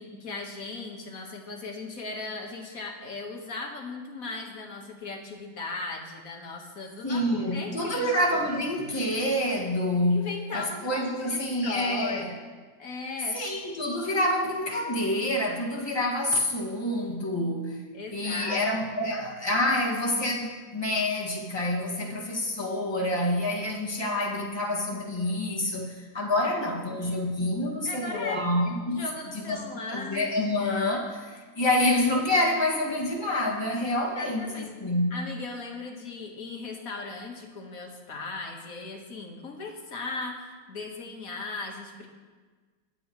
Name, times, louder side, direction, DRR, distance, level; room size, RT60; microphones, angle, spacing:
voice 1, 0.0-7.2 7.5-8.6 10.1-12.5 12.8-13.4 17.9-19.1 26.6-27.0 27.9-28.4 28.9-30.3 34.2-34.7 35.1-42.1, left 3 dB, 50° left, 1 dB, 1.8 m, -38 dB
voice 2, 7.0-12.3 13.3-17.8 18.1-29.1 29.5-29.6 29.9-35.2, left 1 dB, 15° left, -3 dB, 1.8 m, -27 dB
21.5 x 8.7 x 3.1 m, 1.4 s
omnidirectional pair, 2.1 m